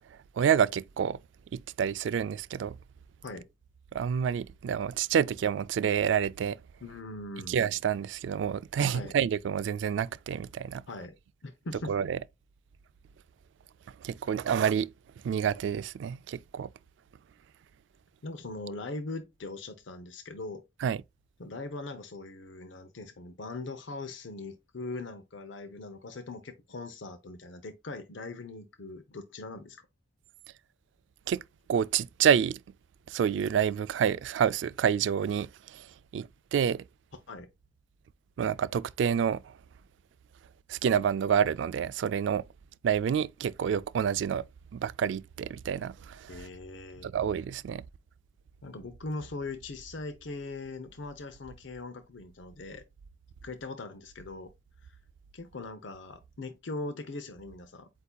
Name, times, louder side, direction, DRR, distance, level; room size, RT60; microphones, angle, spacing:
voice 1, 0.4-1.2 1.5-2.7 3.9-6.6 7.5-10.8 11.9-12.2 14.0-14.9 15.2-16.7 20.8-21.0 31.3-31.4 31.7-32.6 33.1-35.9 36.1-36.8 38.4-39.5 40.7-42.4 42.8-44.4 44.7-46.4 47.0-47.8, right 8 dB, 70° right, 0.3 m, -28 dB
voice 2, 6.8-7.6 8.9-9.2 10.9-11.1 11.4-11.9 18.2-20.6 21.4-29.8 37.3-37.5 46.3-47.1 48.6-52.8 53.4-54.5 54.8-55.0 55.3-57.9, left 3 dB, 80° left, 0.7 m, -40 dB
8.1 x 2.7 x 2.2 m
head